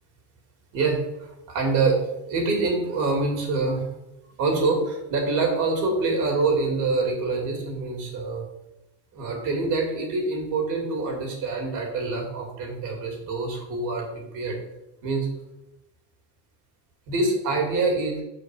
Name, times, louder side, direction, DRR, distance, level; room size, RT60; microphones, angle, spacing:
voice 1, 0.7-3.9 4.4-8.4 9.1-14.6 15.0-15.3 17.1-18.2, right 3 dB, 65° right, 0 dB, 2.7 m, -25 dB
6.2 x 5.0 x 6.3 m, 0.92 s
cardioid pair, 145°, 33 cm